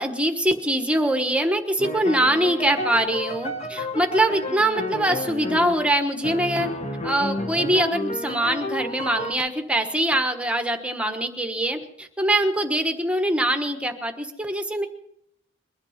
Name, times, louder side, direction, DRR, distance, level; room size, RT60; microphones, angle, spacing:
voice 1, 0.0-6.7 7.0-14.9, right 1 dB, 5° right, 6 dB, 1.2 m, -23 dB
sound 1, 1.8-9.3, left 1 dB, 35° left, 1.4 m, -31 dB
22.0 x 11.5 x 5.8 m, 0.77 s
head